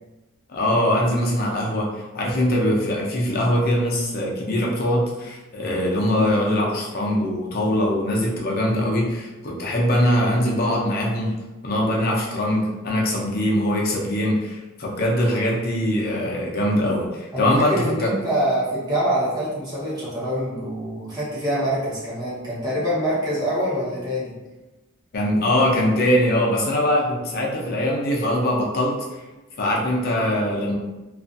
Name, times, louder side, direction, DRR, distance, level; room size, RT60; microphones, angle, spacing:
voice 1, 0.5-11.3 11.6-18.1 25.1-28.9 29.6-30.7, left 1 dB, 50° left, -2 dB, 0.6 m, -22 dB
voice 2, 17.3-24.4, equal, 20° right, -9 dB, 1.0 m, -25 dB
2.4 x 2.4 x 2.5 m, 1.1 s
head